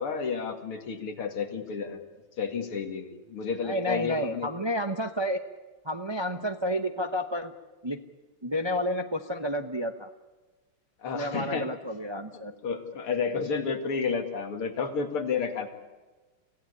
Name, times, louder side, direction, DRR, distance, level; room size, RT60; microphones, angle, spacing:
voice 1, 0.0-2.0 2.4-4.5 11.0-11.7 12.3-15.7, left 5 dB, 80° left, 5 dB, 3.1 m, -31 dB
voice 2, 3.6-5.4 5.8-7.5 7.8-8.0 8.4-10.1 11.1-12.5, equal, 45° right, 7 dB, 0.3 m, -30 dB
25.0 x 16.5 x 9.7 m, 1.2 s
omnidirectional pair, 2.4 m